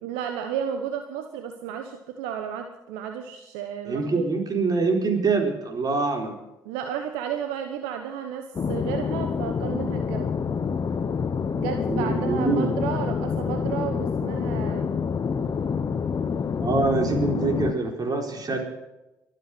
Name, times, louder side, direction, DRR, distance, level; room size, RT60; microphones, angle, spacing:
voice 1, 0.0-4.3 6.6-10.3 11.6-14.9, right 8 dB, 80° right, 6 dB, 1.1 m, -32 dB
voice 2, 3.9-6.3 11.8-12.7 16.6-18.6, right 3 dB, 45° right, 3 dB, 4.4 m, -25 dB
sound 1, 8.5-17.7, left 6 dB, 45° left, 1.1 m, -27 dB
23.5 x 7.9 x 6.1 m, 0.95 s
hypercardioid pair, 45°, 9 cm